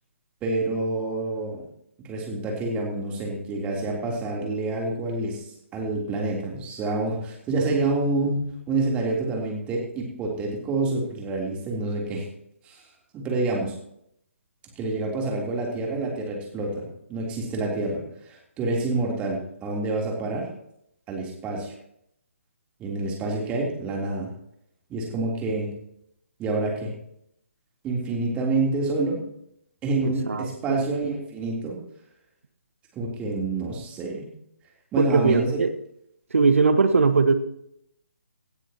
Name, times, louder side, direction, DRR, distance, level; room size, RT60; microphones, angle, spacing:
voice 1, 0.4-1.6 2.0-12.3 12.6-12.8 13.1-13.7 14.7-20.5 21.1-21.7 22.8-24.3 24.9-25.7 26.4-26.9 27.8-29.2 29.8-31.8 32.9-34.3 34.9-35.7, right 2 dB, 15° right, -1 dB, 3.4 m, -27 dB
voice 2, 30.0-30.8 35.0-35.7 36.3-37.3, right 4 dB, 70° right, 10 dB, 1.5 m, -20 dB
18.0 x 13.0 x 3.0 m, 0.74 s
figure-of-eight pair, 145°, 7 cm